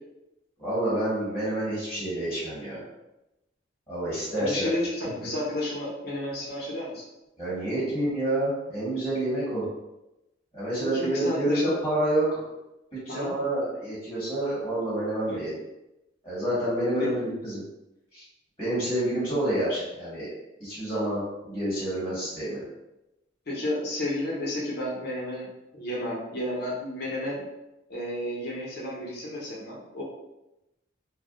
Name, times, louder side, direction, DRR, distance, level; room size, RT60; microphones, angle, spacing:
voice 1, 0.6-2.8 3.9-4.7 7.4-9.6 10.5-12.4 13.0-15.6 16.2-17.6 18.1-18.2 18.6-20.3 20.6-22.6, right 1 dB, 20° left, -11 dB, 1.4 m, -28 dB
voice 2, 4.4-7.0 10.8-11.7 13.1-13.3 15.3-15.4 17.0-17.1 23.5-25.5 25.7-27.4 27.9-30.0, left 1 dB, 55° left, -5 dB, 0.8 m, -32 dB
2.3 x 2.1 x 3.7 m, 0.94 s
head